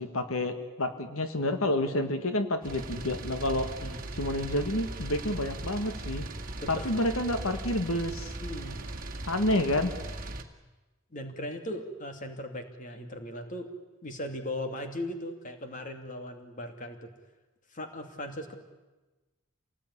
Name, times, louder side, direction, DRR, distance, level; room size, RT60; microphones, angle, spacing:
voice 1, 0.0-3.7 4.2-6.3 6.7-8.3 9.3-9.9, left 1 dB, 75° left, 8 dB, 1.8 m, -29 dB
sound 1, 2.6-10.4, right 2 dB, 40° right, 2.1 m, -38 dB
voice 2, 6.6-7.0 8.4-8.8 11.1-13.7 14.0-17.1 17.7-18.5, left 1 dB, 35° left, 6 dB, 2.6 m, -38 dB
27.5 x 19.0 x 10.0 m, 1.2 s
head